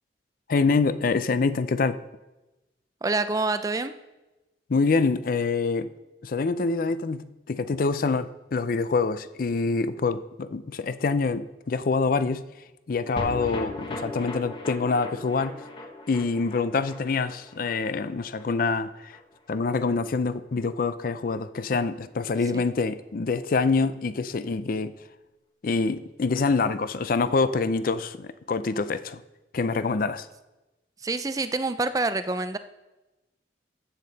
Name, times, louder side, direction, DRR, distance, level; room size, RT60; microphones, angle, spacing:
voice 1, 0.5-2.0 4.7-5.9 6.2-12.4 12.9-15.6 16.1-19.1 19.5-24.9 25.6-29.2 29.5-30.3, left 4 dB, 50° left, 13 dB, 0.4 m, -26 dB
voice 2, 3.0-3.9 22.5-22.6 31.0-32.6, right 3 dB, 20° right, 12 dB, 0.4 m, -27 dB
sound 1, 13.2-19.6 19.9-20.0 20.2-20.3, left 2 dB, 25° left, 1.2 m, -38 dB
14.0 x 7.6 x 4.0 m, 1.0 s
head